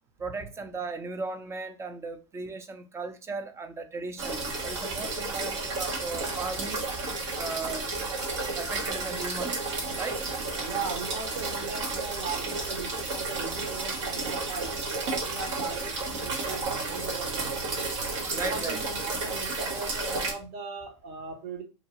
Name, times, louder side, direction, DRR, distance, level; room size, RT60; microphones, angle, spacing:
voice 1, 0.2-6.8 7.4-7.9 8.6-9.6 10.0-10.3 18.3-18.8, right 3 dB, 20° right, 0.5 m, -37 dB
sound 1, 4.2-20.3, right 3 dB, 80° right, 1.2 m, -32 dB
voice 2, 10.6-17.6 18.3-21.6, right 5 dB, 55° right, 1.2 m, -38 dB
2.8 x 2.7 x 3.0 m
hypercardioid pair, 110°, 15 cm